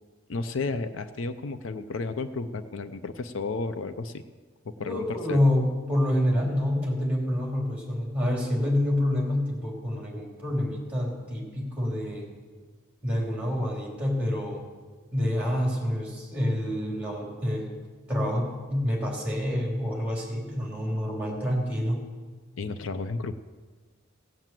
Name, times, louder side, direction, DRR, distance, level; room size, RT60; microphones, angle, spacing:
voice 1, 0.3-4.2 4.7-5.4 22.6-23.3, left 3 dB, 70° left, 11 dB, 0.6 m, -32 dB
voice 2, 4.8-12.3 13.0-14.6 15.1-17.7 18.1-22.0, left 1 dB, 5° right, -1 dB, 3.2 m, -27 dB
17.0 x 7.5 x 7.6 m, 1.4 s
head